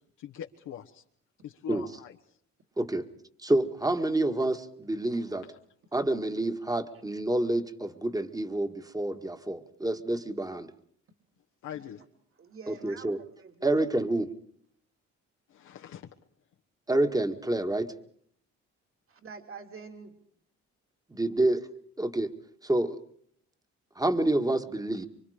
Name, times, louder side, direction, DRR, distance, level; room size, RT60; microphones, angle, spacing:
voice 1, 0.2-1.0 1.4-2.2 5.4-5.5 11.6-12.0 15.5-16.1, left 10 dB, 85° left, 1 dB, 1.4 m, -42 dB
voice 2, 2.8-3.1 3.4-5.4 5.9-10.7 12.7-13.2 13.6-14.3 16.9-17.9 21.1-21.6 22.0-22.3 22.6-23.0 24.0-25.1, right 1 dB, 10° right, 8 dB, 1.8 m, -28 dB
voice 3, 12.4-13.9 19.1-20.2 21.1-21.5, right 5 dB, 45° right, 4 dB, 3.4 m, -47 dB
26.5 x 24.0 x 5.1 m, 0.63 s
cardioid pair, 90°, 30 cm